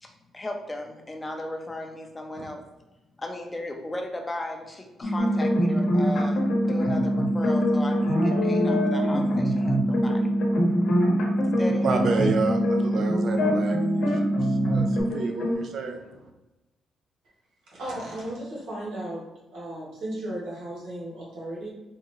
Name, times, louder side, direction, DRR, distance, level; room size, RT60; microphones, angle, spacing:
voice 1, 0.0-2.6 3.2-10.3 11.6-12.3, left 1 dB, 20° left, 3 dB, 0.6 m, -36 dB
sound 1, 5.0-15.0, right 1 dB, 35° left, 0.9 m, -26 dB
sound 2, 5.2-15.6, left 1 dB, 70° left, 0.9 m, -26 dB
voice 2, 11.8-16.2, right 4 dB, 60° right, 4 dB, 0.5 m, -30 dB
voice 3, 17.7-21.7, right 1 dB, 85° right, -5 dB, 1.4 m, -35 dB
3.6 x 2.1 x 3.1 m, 1.1 s
cardioid pair, 90°, 0 cm